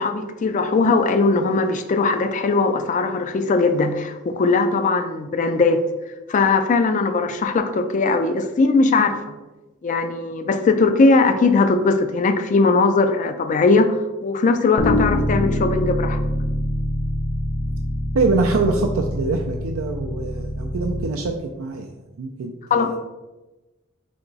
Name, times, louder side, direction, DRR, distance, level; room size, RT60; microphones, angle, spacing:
voice 1, 0.0-5.8 6.3-9.2 9.8-14.0 14.2-16.2 22.7-22.9, left 3 dB, 35° left, 8 dB, 0.3 m, -19 dB
Bass guitar, 14.8-21.0, left 1 dB, 75° left, 0.9 m, -25 dB
voice 2, 18.1-21.9 22.2-23.0, right 3 dB, 75° right, 2 dB, 0.4 m, -24 dB
3.5 x 2.9 x 3.9 m, 1.1 s
head